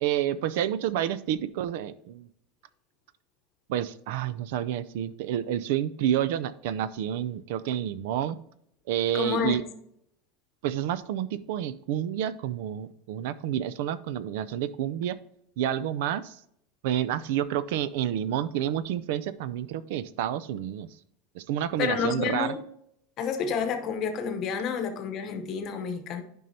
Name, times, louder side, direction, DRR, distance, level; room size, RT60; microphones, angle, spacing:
voice 1, 0.0-2.3 3.7-8.4 8.9-9.6 10.6-15.1 15.6-16.4 16.8-20.9 21.4-22.5, right 10 dB, 65° right, 0.4 m, -29 dB
voice 2, 9.1-9.6 21.8-22.6 23.2-26.2, left 7 dB, 35° left, 0.9 m, -29 dB
10.5 x 5.4 x 2.8 m
supercardioid pair, 165°, 0 cm